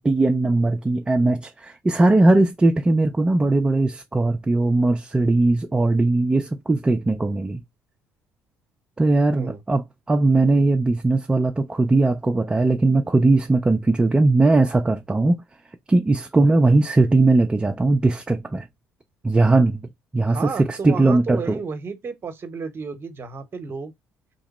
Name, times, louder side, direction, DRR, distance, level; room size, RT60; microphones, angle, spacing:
voice 1, 0.0-7.6 9.0-15.4 15.9-18.6 19.2-19.9 20.1-21.6, right 2 dB, 15° right, 0.5 m, -19 dB
voice 2, 20.3-23.9, right 5 dB, 40° right, 0.9 m, -32 dB
2.9 x 2.1 x 4.0 m
supercardioid pair, 70°, 6 cm